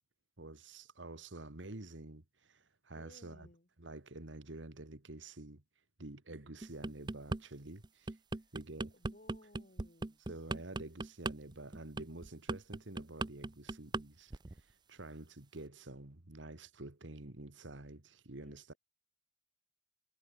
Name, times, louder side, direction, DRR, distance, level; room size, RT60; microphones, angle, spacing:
voice 1, 0.4-3.5 3.8-5.6 6.0-8.2 8.5-8.9 10.3-18.7, right 2 dB, 85° right, 2.1 m, -49 dB
voice 2, 2.9-3.7 8.3-8.5 8.9-10.2 18.4-18.8, left 1 dB, 45° left, 6.8 m, -61 dB
sound 1, 6.6-7.4 7.8-14.0 14.3-14.6, right 2 dB, 25° right, 0.6 m, -38 dB
head